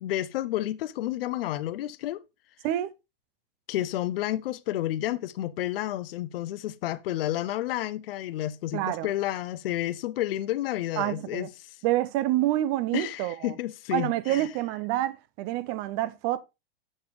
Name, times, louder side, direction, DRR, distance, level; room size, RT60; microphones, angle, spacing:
voice 1, 0.0-2.2 3.7-11.8 12.9-14.5, left 14 dB, 70° left, 0.6 m, -31 dB
voice 2, 8.7-9.1 11.0-11.5 11.8-13.6 13.9-16.4, right 14 dB, 35° right, 0.5 m, -27 dB
7.2 x 6.8 x 3.1 m
hypercardioid pair, 135°, 30 cm